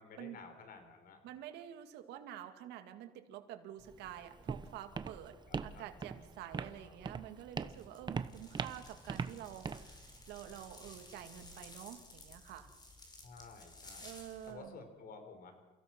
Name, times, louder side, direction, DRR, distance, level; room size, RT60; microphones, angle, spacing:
voice 1, 0.0-1.2 5.5-5.9 6.5-7.0 13.2-14.1 14.4-15.5, left 4 dB, 60° left, 6 dB, 4.7 m, -53 dB
voice 2, 1.2-5.4 5.6-10.0 10.3-12.7 14.0-14.8, right 11 dB, 90° right, 7 dB, 2.2 m, -48 dB
Walk footsteps, 3.8-11.8, right 5 dB, 25° right, 1.0 m, -43 dB
sound 1, 7.7-14.5, left 2 dB, 25° left, 5.2 m, -55 dB
29.5 x 16.0 x 6.1 m, 1.2 s
cardioid pair, 110°, 17 cm